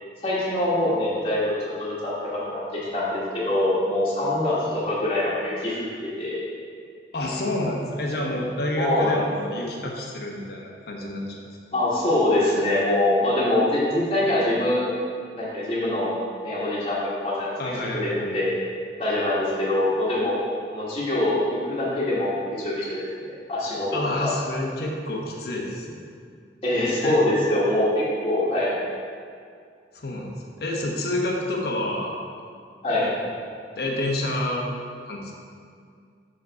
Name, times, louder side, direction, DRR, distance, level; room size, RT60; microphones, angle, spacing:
voice 1, 0.2-5.9 6.2-6.4 8.8-9.6 11.7-14.9 15.3-16.1 16.4-18.6 19.0-20.4 20.7-23.0 23.5-23.9 24.2-24.3 26.6-28.7 32.8-33.1, left 1 dB, 30° left, -9 dB, 1.4 m, -24 dB
voice 2, 7.1-11.4 17.6-18.2 23.9-26.0 27.0-27.2 29.9-32.2 32.9-33.3 33.7-34.6 35.1-35.3, left 1 dB, 60° left, -1 dB, 0.9 m, -28 dB
6.2 x 4.9 x 4.6 m, 2.2 s
head